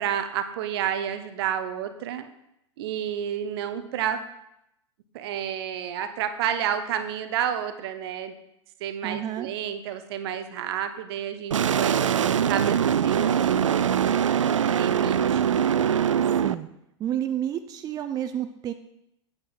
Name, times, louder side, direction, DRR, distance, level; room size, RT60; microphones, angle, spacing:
voice 1, 0.0-2.2 2.8-4.2 5.1-8.3 8.8-12.0 12.5-14.1 14.7-15.6, right 9 dB, 55° right, 9 dB, 1.0 m, -30 dB
voice 2, 9.0-9.5 16.4-16.7 17.0-18.7, right 10 dB, 25° right, 9 dB, 0.5 m, -30 dB
sound 1, 11.5-16.5, right 8 dB, 80° right, 0.4 m, -22 dB
8.5 x 8.3 x 4.1 m, 0.82 s
figure-of-eight pair, 95°, 16 cm